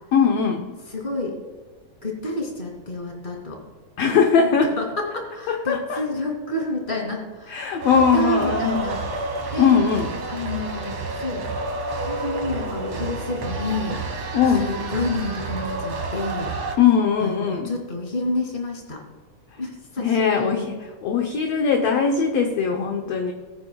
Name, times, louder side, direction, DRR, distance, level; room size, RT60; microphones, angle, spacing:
voice 1, 0.1-0.7 4.0-4.7 5.5-6.0 7.5-8.9 9.6-10.2 14.3-14.7 16.8-17.7 20.0-20.7 21.0-23.3, left 6 dB, 70° left, 3 dB, 1.8 m, -20 dB
voice 2, 0.9-1.4 2.0-3.6 4.0-4.5 4.8-9.0 9.5-9.7 10.3-11.5 11.9-14.0 14.6-16.5 17.2-19.0 19.6-20.7, left 1 dB, 15° left, 0 dB, 2.3 m, -29 dB
sound 1, 7.8-16.7, right 3 dB, 55° right, 2.7 m, -30 dB
20.5 x 9.4 x 2.3 m, 1.4 s
omnidirectional pair, 3.5 m